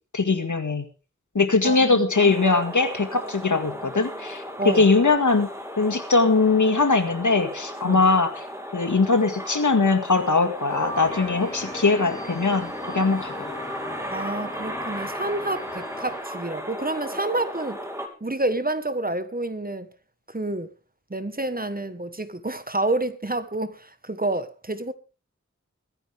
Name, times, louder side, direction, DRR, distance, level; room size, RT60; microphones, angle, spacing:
voice 1, 0.1-0.8 1.4-5.5 5.8-8.4 8.7-13.5, left 3 dB, 85° left, 1.9 m, -21 dB
voice 2, 1.6-2.3 4.6-4.9 7.8-8.0 14.1-17.8 18.2-19.9 20.3-20.7 21.1-24.9, right 2 dB, 30° right, 1.3 m, -29 dB
sound 1, 2.1-18.1, equal, 10° right, 2.7 m, -36 dB
sound 2, 10.7-16.2, left 1 dB, 10° left, 3.6 m, -37 dB
23.0 x 10.5 x 3.5 m
wide cardioid pair, 50°, 29 cm